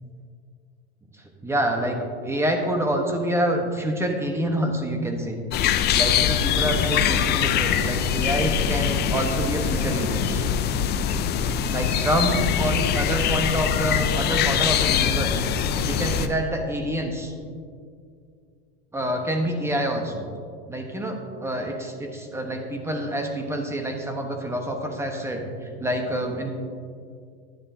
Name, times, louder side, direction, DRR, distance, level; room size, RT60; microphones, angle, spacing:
voice 1, 1.4-2.0 2.2-5.4 5.9-10.4 11.7-15.4 15.8-17.3 18.9-20.3 20.7-26.5, right 1 dB, 10° right, 3 dB, 1.1 m, -27 dB
sound 1, 5.5-16.3, left 8 dB, 30° left, 0.5 m, -23 dB
11.0 x 10.5 x 2.8 m, 2.2 s
supercardioid pair, 120°, 32 cm